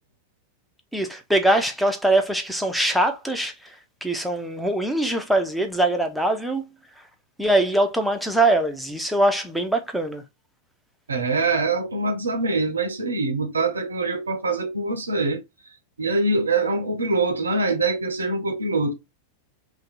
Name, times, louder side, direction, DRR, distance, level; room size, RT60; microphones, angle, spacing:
voice 1, 0.9-3.7 4.0-6.7 7.4-10.2, right 1 dB, ahead, 0.6 m, -22 dB
voice 2, 11.1-15.4 16.0-18.9, right 3 dB, 75° right, 0.5 m, -24 dB
2.6 x 2.2 x 3.9 m
figure-of-eight pair, 90°, 0 cm